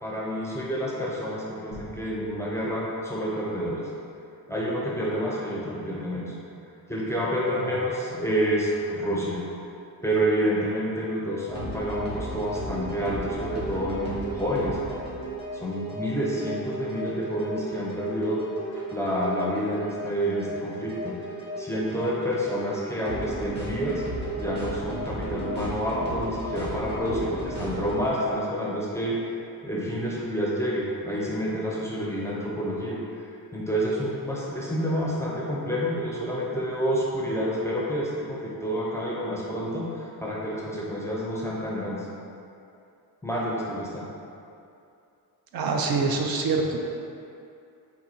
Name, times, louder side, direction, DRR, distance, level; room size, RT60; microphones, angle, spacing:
voice 1, 0.0-3.9 4.5-6.3 6.9-9.4 10.0-14.8 15.5-18.4 18.8-21.2 21.6-24.0 24.4-29.2 29.6-42.1 43.2-44.1, equal, 10° left, -6 dB, 0.4 m, -28 dB
sound 1, 1.7-4.1, right 1 dB, 85° right, 1.3 m, -49 dB
sound 2, 11.5-28.1, right 1 dB, 25° right, 0.9 m, -35 dB
voice 2, 45.5-46.9, right 3 dB, 65° right, 2 dB, 0.5 m, -26 dB
3.9 x 2.6 x 4.2 m, 2.6 s
wide cardioid pair, 175°, 38 cm